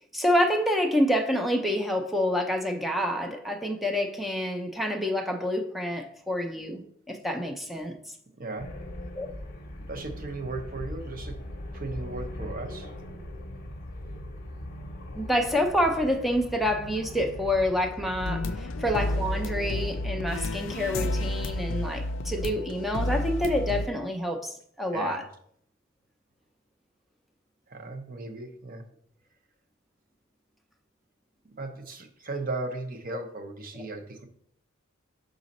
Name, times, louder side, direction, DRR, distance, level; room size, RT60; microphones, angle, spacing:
voice 1, 0.1-6.8 7.1-8.1 9.2-9.3 15.1-25.2, equal, ahead, 0.5 m, -27 dB
voice 2, 8.4-8.7 9.9-11.4 11.7-12.9 24.9-25.2 27.7-28.8 31.6-34.3, right 2 dB, 40° right, 0.7 m, -36 dB
sound 1, 8.6-21.6, left 1 dB, 40° left, 0.8 m, -40 dB
sound 2, 18.2-23.9, left 1 dB, 60° left, 0.4 m, -31 dB
6.1 x 3.9 x 4.1 m
head